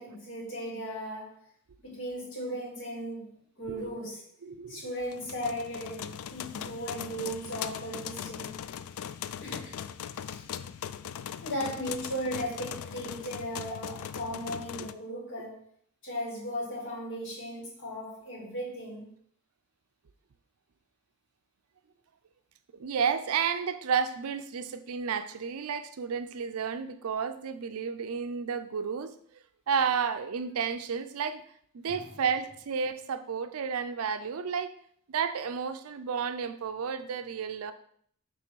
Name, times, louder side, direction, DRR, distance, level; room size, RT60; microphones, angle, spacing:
voice 1, 0.0-1.4 1.8-3.3 3.6-4.2 4.7-8.5 9.4-9.8 10.2-10.4 11.4-15.6 16.0-19.1 31.9-32.0, equal, 60° left, 2.3 m, -36 dB
voice 2, 3.7-4.0 4.4-4.9 22.7-31.4 31.7-34.7 35.1-37.7, right 6 dB, 70° right, 0.5 m, -32 dB
sound 1, 5.1-14.9, left 9 dB, 80° left, 0.3 m, -39 dB
6.2 x 3.4 x 4.6 m
head